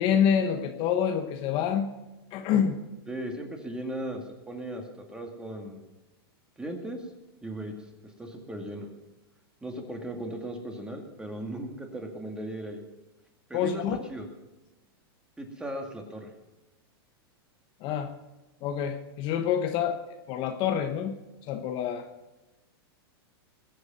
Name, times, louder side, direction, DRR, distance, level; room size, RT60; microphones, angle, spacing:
voice 1, 0.0-1.9 2.3-2.8 13.5-14.0 17.8-18.1 18.6-20.0 20.3-21.2 21.5-22.1, left 8 dB, 40° left, 6 dB, 1.0 m, -27 dB
voice 2, 3.1-4.8 5.1-5.8 6.6-7.0 7.4-7.7 8.0-8.9 9.6-12.8 13.5-13.8 14.1-14.3 15.4-16.3, right 1 dB, 5° right, 3 dB, 2.1 m, -37 dB
20.5 x 8.2 x 5.5 m, 1.1 s
hypercardioid pair, 135°, 13 cm